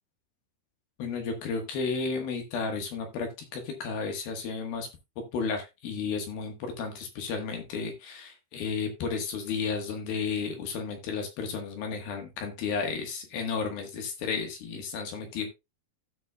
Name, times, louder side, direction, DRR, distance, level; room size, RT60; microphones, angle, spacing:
voice 1, 1.0-4.9 5.3-15.5, left 5 dB, 65° left, 4 dB, 3.0 m, -33 dB
16.0 x 5.4 x 2.2 m, 0.23 s
omnidirectional pair, 5.0 m